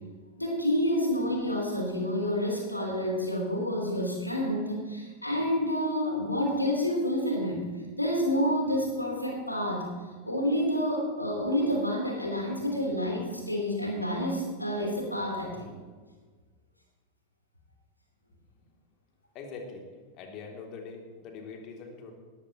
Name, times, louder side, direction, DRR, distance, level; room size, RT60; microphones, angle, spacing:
voice 1, 0.4-7.7 8.0-9.9 10.3-15.7, equal, 85° left, 0 dB, 3.7 m, -29 dB
voice 2, 19.3-19.9 20.1-22.1, left 4 dB, 40° left, 1 dB, 2.9 m, -43 dB
18.5 x 14.5 x 3.1 m, 1.4 s
figure-of-eight pair, 90°, 0 cm